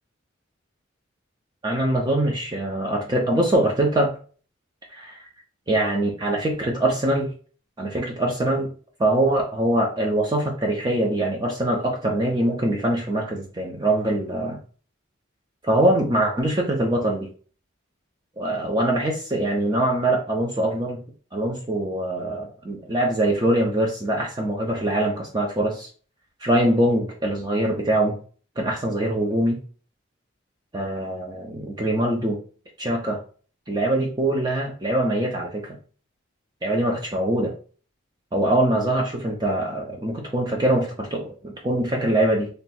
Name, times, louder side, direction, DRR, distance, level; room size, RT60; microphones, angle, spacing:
voice 1, 1.6-4.1 4.9-5.2 5.7-7.3 7.8-8.7 9.0-14.6 15.6-17.3 18.4-21.0 21.3-25.9 26.4-28.1 28.6-29.6 30.7-32.4 32.8-33.2 33.7-35.8 36.6-37.5 38.3-42.5, right 1 dB, 20° right, 0 dB, 0.5 m, -23 dB
3.3 x 2.3 x 4.2 m, 0.41 s
head